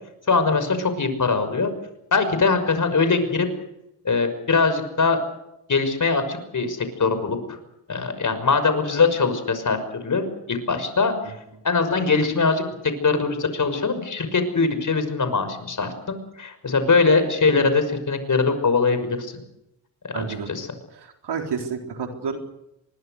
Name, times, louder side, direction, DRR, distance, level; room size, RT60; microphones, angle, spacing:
voice 1, 0.3-1.7 2.1-3.5 4.0-5.2 5.7-7.6 7.9-11.3 11.6-19.3 20.1-20.7, left 4 dB, 40° left, 10 dB, 6.0 m, -22 dB
voice 2, 20.1-20.5 21.2-22.4, right 6 dB, 55° right, 3 dB, 4.0 m, -29 dB
24.5 x 22.0 x 6.6 m, 0.84 s
supercardioid pair, 55°, 48 cm